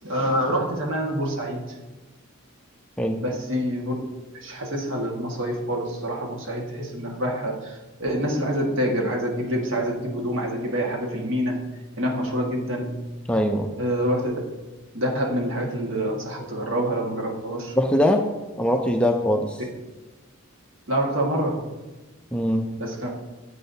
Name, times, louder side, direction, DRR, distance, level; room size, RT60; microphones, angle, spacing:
voice 1, 0.0-1.6 3.2-3.9 4.3-11.7 12.0-13.0 13.8-14.4 14.9-17.7 20.9-21.6 22.8-23.1, equal, 60° right, 0 dB, 1.6 m, -26 dB
voice 2, 13.3-13.7 17.8-18.3 18.6-19.6 22.3-22.7, equal, 5° left, 4 dB, 0.4 m, -22 dB
10.0 x 7.8 x 2.7 m, 1.1 s
head